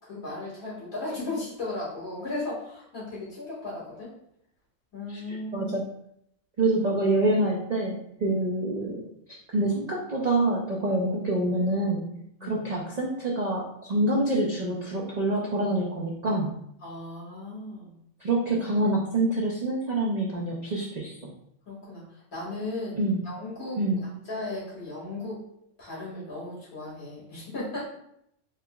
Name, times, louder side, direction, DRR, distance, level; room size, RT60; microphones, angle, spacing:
voice 1, 0.0-4.1 4.9-5.7 12.4-12.7 16.8-17.9 21.7-23.0 23.2-25.4 25.8-27.9, left 2 dB, 90° left, -8 dB, 2.2 m, -36 dB
voice 2, 5.5-5.9 6.6-9.1 9.5-12.1 12.4-16.5 18.2-21.3 23.0-23.2 23.8-24.0, right 2 dB, 65° right, -4 dB, 0.4 m, -26 dB
4.4 x 2.9 x 2.3 m, 0.74 s
omnidirectional pair, 1.4 m